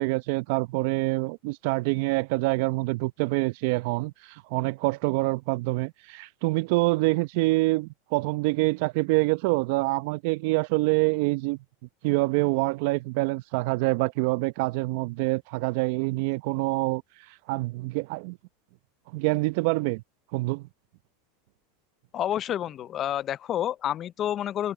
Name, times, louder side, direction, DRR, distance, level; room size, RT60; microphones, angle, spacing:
voice 1, 0.0-11.6 12.0-17.0 17.5-18.4 19.1-20.0 20.3-20.7, right 24 dB, 65° right, 0.8 m, -26 dB
voice 2, 22.1-24.7, left 11 dB, 40° left, 0.5 m, -29 dB
hypercardioid pair, 100°, 0 cm